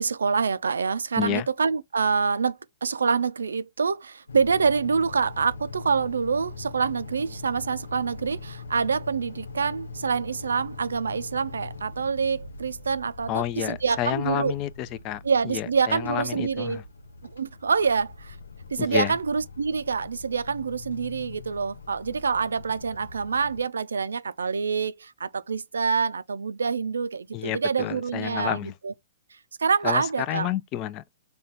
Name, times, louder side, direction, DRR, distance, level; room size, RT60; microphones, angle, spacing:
voice 1, 0.0-14.5 15.2-16.8 17.3-18.4 18.7-28.6 28.8-28.9 29.6-30.5, right 5 dB, 85° right, 0.3 m, -26 dB
voice 2, 1.2-1.5 13.3-16.8 18.8-19.1 27.3-28.7 29.8-31.1, left 12 dB, 35° left, 0.4 m, -30 dB
sound 1, 4.3-23.6, left 3 dB, 85° left, 0.5 m, -42 dB
4.2 x 2.2 x 3.9 m
hypercardioid pair, 125°, 0 cm